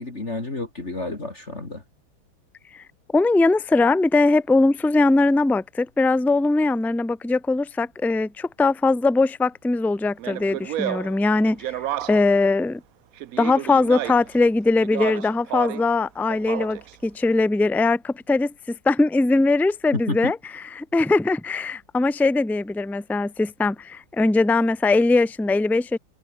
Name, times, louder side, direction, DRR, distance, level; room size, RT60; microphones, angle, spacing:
voice 1, 0.0-1.8 20.1-20.3, left 2 dB, 35° left, 3.8 m, -30 dB
voice 2, 3.1-11.7 12.1-12.8 13.4-26.0, left 3 dB, ahead, 0.7 m, -21 dB
Speech, 10.2-12.4 13.2-14.4 14.8-15.9 16.3-16.9, right 12 dB, 65° right, 0.9 m, -31 dB
omnidirectional pair, 2.1 m